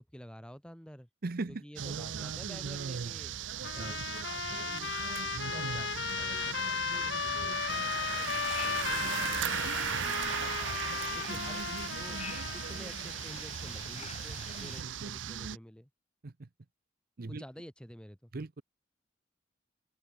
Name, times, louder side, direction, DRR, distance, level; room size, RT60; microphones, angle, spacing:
voice 1, 0.0-1.1 1.5-3.3 3.7-4.0 4.3-4.9 5.2-10.8 11.1-12.2 12.5-15.9 17.3-18.3, equal, 5° left, 4.5 m, -51 dB
voice 2, 1.2-1.6 3.6-3.9 11.3-11.4 16.2-16.5 17.2-17.4 18.3-18.6, right 3 dB, 50° right, 0.7 m, -38 dB
sound 1, 1.8-15.6, right 8 dB, 90° right, 0.6 m, -37 dB
Trumpet, 3.6-12.8, left 7 dB, 65° left, 0.6 m, -36 dB
sound 2, 7.7-14.8, left 6 dB, 35° left, 1.9 m, -47 dB
open air
head